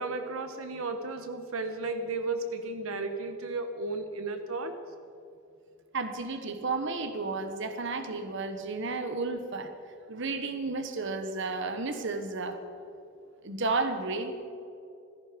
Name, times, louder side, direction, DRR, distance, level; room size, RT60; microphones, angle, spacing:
voice 1, 0.0-4.7, right 3 dB, 80° right, 7 dB, 1.1 m, -34 dB
voice 2, 5.9-9.7 10.1-12.6 13.4-14.3, right 3 dB, 60° right, 8 dB, 1.2 m, -32 dB
16.0 x 14.0 x 5.2 m, 2.6 s
head